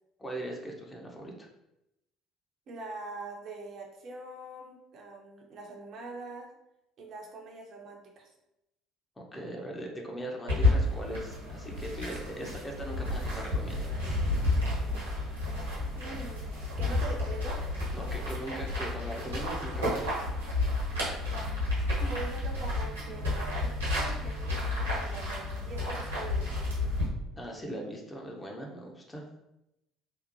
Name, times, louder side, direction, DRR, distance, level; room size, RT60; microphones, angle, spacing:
voice 1, 0.2-1.5 9.2-13.9 17.9-20.1 27.4-29.3, right 1 dB, 15° left, 0 dB, 0.5 m, -40 dB
voice 2, 2.7-6.5 7.0-8.4 16.0-17.6 22.0-26.7, right 2 dB, 50° right, 1 dB, 0.5 m, -43 dB
sound 1, 10.5-27.0, left 2 dB, 85° right, 1.0 m, -31 dB
2.7 x 2.1 x 2.5 m, 0.89 s
figure-of-eight pair, 60°, 0 cm